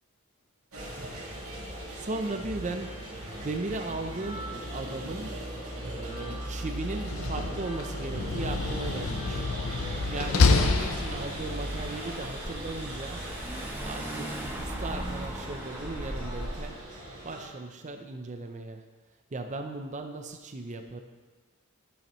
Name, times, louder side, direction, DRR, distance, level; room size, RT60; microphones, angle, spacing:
sound 1, 0.7-17.5, right 1 dB, 75° right, 2.6 m, -38 dB
voice 1, 1.9-2.9 3.4-5.4 5.8-9.5 10.1-13.2 13.8-14.3 14.6-16.8 17.2-18.8 19.3-21.0, right 2 dB, 35° right, 5 dB, 0.6 m, -37 dB
Slam, 6.9-11.7, left 4 dB, 70° left, 0.6 m, -27 dB
Car / Engine, 10.1-16.8, right 1 dB, 10° right, 1.0 m, -39 dB
12.0 x 6.7 x 3.1 m, 1.3 s
head